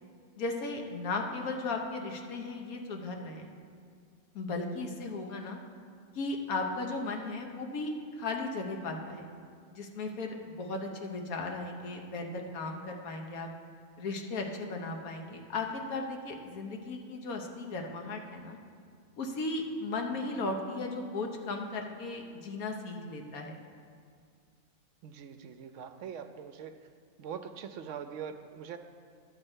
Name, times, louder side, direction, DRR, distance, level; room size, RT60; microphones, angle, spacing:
voice 1, 0.4-3.5 4.3-5.6 6.1-9.3 9.7-13.5 14.0-18.6 19.2-23.5, left 3 dB, 90° left, 3 dB, 1.4 m, -36 dB
voice 2, 25.0-26.8 27.2-28.8, right 7 dB, 70° right, 9 dB, 0.8 m, -42 dB
11.5 x 4.4 x 8.0 m, 2.1 s
omnidirectional pair, 1.5 m